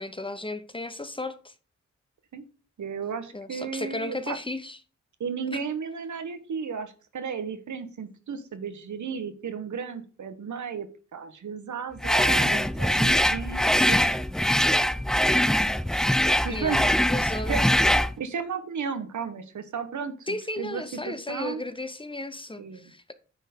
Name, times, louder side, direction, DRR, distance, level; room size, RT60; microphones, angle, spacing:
voice 1, 0.0-1.5 3.3-4.8 5.5-5.6 13.7-14.1 16.5-17.6 20.3-23.1, left 2 dB, 15° left, 0.9 m, -35 dB
voice 2, 2.8-4.4 5.2-14.1 16.4-17.0 17.5-21.6 22.6-22.9, right 6 dB, 85° right, 1.2 m, -34 dB
sound 1, 12.0-18.1, equal, ahead, 0.3 m, -22 dB
9.8 x 4.6 x 5.3 m
wide cardioid pair, 80°, 29 cm